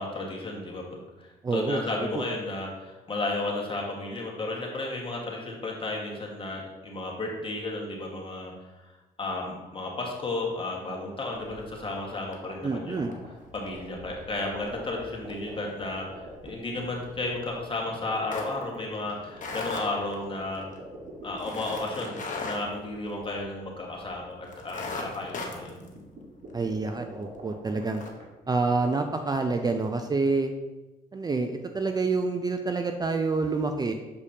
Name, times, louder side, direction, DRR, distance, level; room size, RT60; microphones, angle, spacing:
voice 1, 0.0-8.9 9.2-13.1 13.5-20.6 21.2-25.7, left 2 dB, 30° left, -1 dB, 1.6 m, -33 dB
voice 2, 1.4-1.8 2.1-2.2 12.6-13.1 26.5-28.0 28.5-30.5 31.1-33.9, right 3 dB, 25° right, 6 dB, 0.4 m, -27 dB
sound 1, 11.3-12.0 12.3-12.6 12.9-23.7 24.0-24.1 24.4-27.0 27.4-27.5 27.8-28.1, left 3 dB, 50° left, 1.1 m, -39 dB
sound 2, 11.4-30.3, right 3 dB, 60° right, 1.7 m, -48 dB
6.7 x 4.9 x 2.8 m, 1.1 s
supercardioid pair, 75°, 17 cm